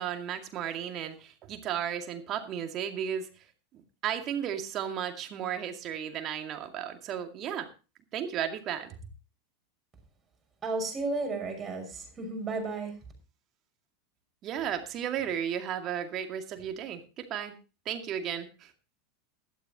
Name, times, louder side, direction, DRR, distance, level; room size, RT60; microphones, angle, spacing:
voice 1, 0.0-3.3 4.0-7.7 8.1-8.9 14.4-17.5 17.9-18.7, right 9 dB, 40° right, 6 dB, 2.2 m, -34 dB
voice 2, 10.6-12.9, right 3 dB, 20° right, 3 dB, 5.8 m, -33 dB
16.0 x 12.5 x 2.9 m, 0.33 s
figure-of-eight pair, 85°, 0 cm